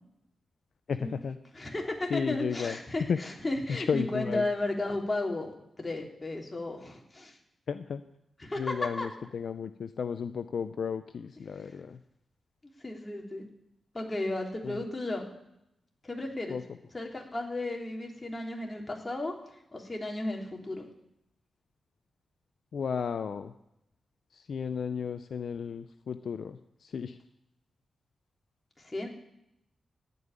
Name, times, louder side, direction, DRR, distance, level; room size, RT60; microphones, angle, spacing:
voice 1, 0.9-1.4 2.1-2.8 3.1-3.2 3.7-4.5 7.7-8.1 8.6-12.0 14.6-14.9 16.5-16.8 22.7-23.5 24.3-27.2, left 6 dB, 70° left, 10 dB, 0.5 m, -33 dB
voice 2, 1.5-5.5 5.8-7.3 8.4-8.6 9.0-9.1 12.8-13.4 13.9-15.3 16.0-16.6 16.9-19.3 19.7-20.8 28.8-29.1, left 2 dB, 25° left, 1 dB, 3.0 m, -34 dB
16.0 x 5.5 x 9.7 m, 0.82 s
cardioid pair, 60°, 0 cm